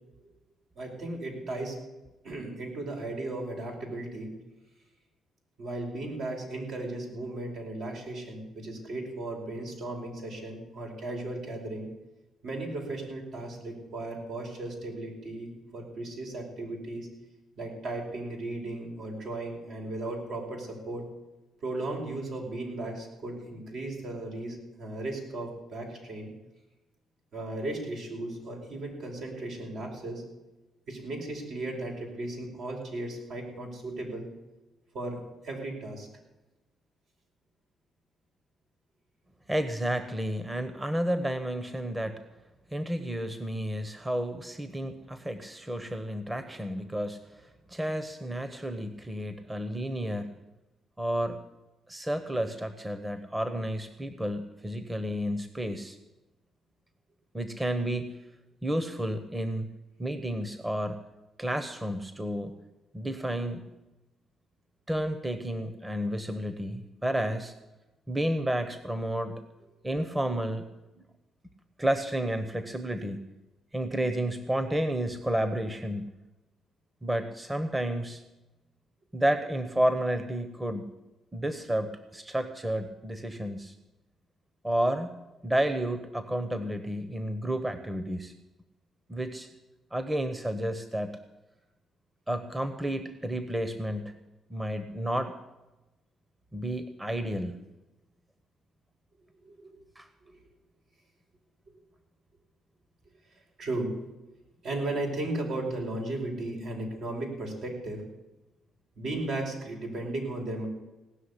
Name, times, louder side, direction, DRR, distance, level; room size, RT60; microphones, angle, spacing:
voice 1, 0.7-1.8 2.2-4.3 5.6-11.9 12.4-17.1 17.6-21.0 21.6-26.3 27.3-30.2 30.9-34.3 34.9-36.1 99.4-99.8 100.2-100.4 103.6-103.9 104.6-108.0 108.9-110.7, right 2 dB, 70° right, 0 dB, 5.1 m, -36 dB
voice 2, 39.5-42.2 42.7-47.4 47.7-50.4 51.0-51.4 51.9-56.0 57.3-58.2 58.6-59.7 60.0-61.0 61.4-62.5 62.9-63.6 64.9-67.5 68.1-69.4 69.8-70.7 71.8-73.2 73.7-76.1 77.0-78.2 79.1-80.9 81.3-83.7 84.6-85.2 85.4-88.3 89.1-89.5 89.9-91.2 92.3-94.2 94.5-95.4 96.5-97.6 100.0-100.1, right 1 dB, 15° right, 10 dB, 1.1 m, -31 dB
17.5 x 6.4 x 9.9 m, 1.0 s
cardioid pair, 90°, 0 cm